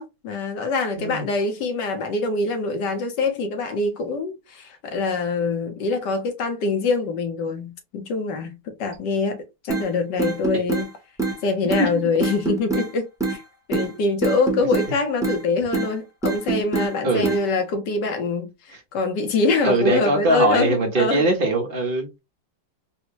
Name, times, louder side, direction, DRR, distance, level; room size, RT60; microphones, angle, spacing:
voice 1, 0.0-10.9 11.4-13.4 13.7-21.3, left 3 dB, 70° left, 1.3 m, -24 dB
sound 1, 9.7-9.9 10.2-10.9 11.2-11.4 11.7-11.9 12.2-12.9 13.2-13.4 13.7-13.9 14.2-14.9 15.2-15.4 15.7-15.9 16.2-16.9 17.2-17.4, right 3 dB, 5° right, 0.6 m, -24 dB
voice 2, 19.6-22.1, right 2 dB, 40° right, 0.8 m, -21 dB
4.3 x 2.1 x 2.8 m
omnidirectional pair, 2.1 m